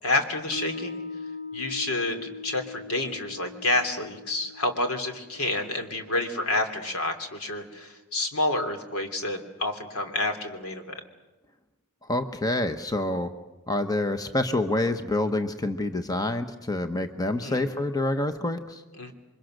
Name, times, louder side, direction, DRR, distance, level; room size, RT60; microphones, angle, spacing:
voice 1, 0.0-1.0 1.5-10.9 17.3-17.6 19.0-19.1, left 2 dB, 75° left, 6 dB, 3.1 m, -29 dB
Mallet percussion, 0.5-6.7, left 4 dB, 60° left, 2.2 m, -41 dB
voice 2, 12.1-13.3 13.7-18.8, left 2 dB, 15° left, 8 dB, 1.0 m, -27 dB
28.5 x 24.0 x 6.6 m, 1.1 s
head